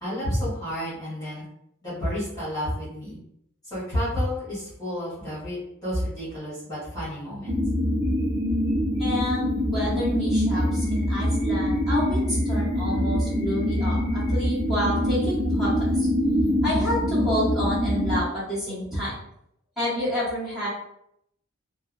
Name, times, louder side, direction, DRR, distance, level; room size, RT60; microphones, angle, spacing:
voice 1, 0.0-1.4 1.8-3.2 3.6-7.6, equal, 20° left, -11 dB, 1.1 m, -30 dB
sound 1, 7.5-18.2, equal, 75° right, 0.7 m, -24 dB
voice 2, 9.0-15.7 16.6-19.2 19.8-20.7, equal, ahead, -10 dB, 1.3 m, -29 dB
2.6 x 2.0 x 2.4 m, 0.76 s
head